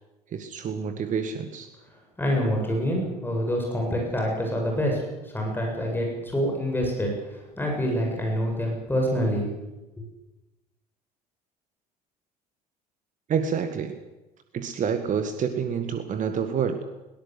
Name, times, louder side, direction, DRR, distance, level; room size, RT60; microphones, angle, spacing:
voice 1, 0.3-1.7 13.3-14.0 14.5-16.8, right 7 dB, 40° right, 9 dB, 1.8 m, -28 dB
voice 2, 2.2-5.0 5.3-7.1 7.6-9.5, equal, 10° left, 0 dB, 7.6 m, -26 dB
22.5 x 18.0 x 8.0 m, 1.0 s
figure-of-eight pair, 60°, 20 cm